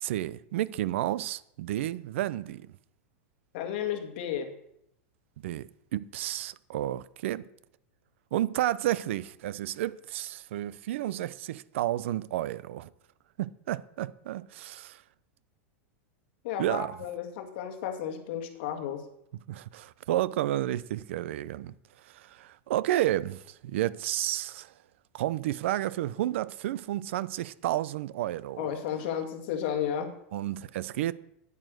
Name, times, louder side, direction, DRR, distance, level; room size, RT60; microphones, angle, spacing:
voice 1, 0.0-2.7 5.4-7.5 8.3-12.9 13.4-15.0 16.6-17.0 19.5-21.7 22.0-24.7 25.1-28.7 30.3-31.1, right 14 dB, 60° right, 0.6 m, -31 dB
voice 2, 3.5-4.5 16.4-19.0 28.6-30.1, left 9 dB, 45° left, 2.0 m, -33 dB
9.9 x 9.1 x 6.4 m
supercardioid pair, 175°, 7 cm